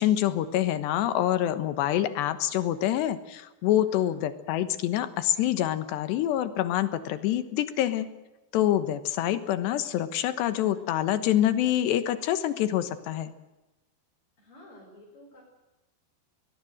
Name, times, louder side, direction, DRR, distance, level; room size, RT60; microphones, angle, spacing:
voice 1, 0.0-8.1 8.5-13.3, left 12 dB, 85° left, 11 dB, 3.5 m, -26 dB
voice 2, 3.8-4.2 14.4-15.4, left 1 dB, 30° left, -2 dB, 6.1 m, -51 dB
22.5 x 20.5 x 7.8 m, 1.0 s
omnidirectional pair, 4.9 m